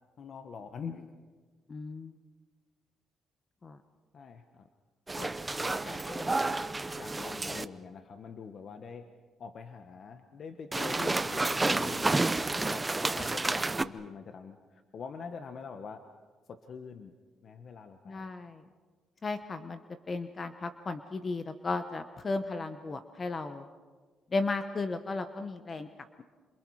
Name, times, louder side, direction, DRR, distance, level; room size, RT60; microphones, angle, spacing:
voice 1, 0.2-1.2 4.1-4.7 5.2-6.6 6.9-9.1 9.4-16.1 16.5-17.1 17.4-18.3, left 5 dB, 55° left, 7 dB, 1.3 m, -44 dB
voice 2, 1.7-2.1 3.6-3.8 18.1-18.6 19.2-19.8 20.1-23.7 24.3-25.9, left 3 dB, 35° left, 9 dB, 1.1 m, -35 dB
sound 1, 5.1-7.6 10.7-13.8, right 2 dB, 20° right, 0.7 m, -30 dB
27.5 x 27.5 x 4.9 m, 1.4 s
cardioid pair, 90°, 0 cm